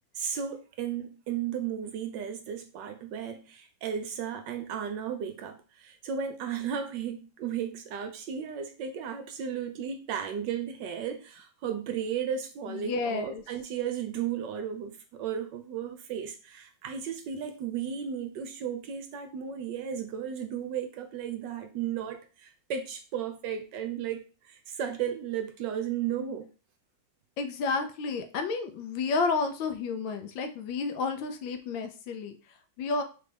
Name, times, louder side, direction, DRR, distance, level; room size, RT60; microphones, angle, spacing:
voice 1, 0.1-26.5, right 8 dB, 70° right, 1.2 m, -34 dB
voice 2, 12.7-13.4 27.4-32.4 32.8-33.0, left 4 dB, 75° left, 1.4 m, -31 dB
4.0 x 3.4 x 3.3 m
omnidirectional pair, 2.2 m